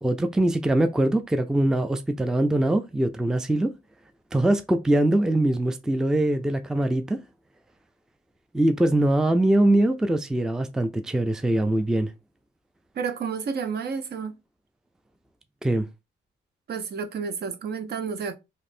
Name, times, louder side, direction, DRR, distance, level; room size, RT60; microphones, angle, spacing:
voice 1, 0.0-3.7 4.3-7.2 8.5-12.1 15.6-15.9, right 1 dB, 5° right, 0.4 m, -22 dB
voice 2, 12.9-14.3 16.7-18.4, right 6 dB, 55° right, 0.7 m, -30 dB
3.1 x 2.6 x 4.2 m
cardioid pair, 90°, 20 cm